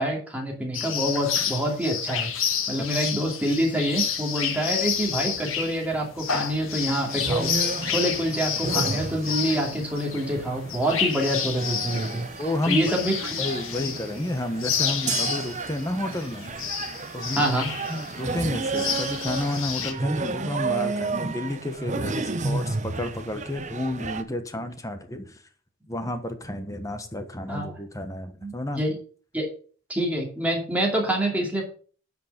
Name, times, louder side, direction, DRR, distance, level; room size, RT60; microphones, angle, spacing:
voice 1, 0.0-13.3 17.3-17.7 27.5-27.7 28.4-29.0 29.3-29.5 29.9-31.6, right 1 dB, 5° right, -1 dB, 2.6 m, -26 dB
sound 1, 0.7-19.9, left 7 dB, 70° left, 1.8 m, -30 dB
sound 2, 7.1-24.2, right 3 dB, 35° right, 0.8 m, -32 dB
voice 2, 12.4-13.0 13.4-16.5 17.1-17.5 17.9-25.4 25.9-28.8, left 1 dB, 15° left, 8 dB, 1.2 m, -31 dB
10.5 x 5.2 x 6.7 m, 0.42 s
head